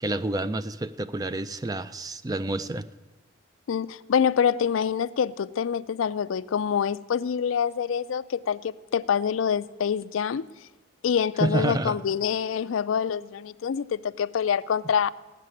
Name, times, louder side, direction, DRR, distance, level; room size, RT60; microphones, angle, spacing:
voice 1, 0.0-2.9 11.4-12.0, right 2 dB, 20° right, 0.3 m, -28 dB
voice 2, 3.7-10.4 11.0-15.1, left 7 dB, 85° left, 0.4 m, -26 dB
16.0 x 6.7 x 9.7 m
head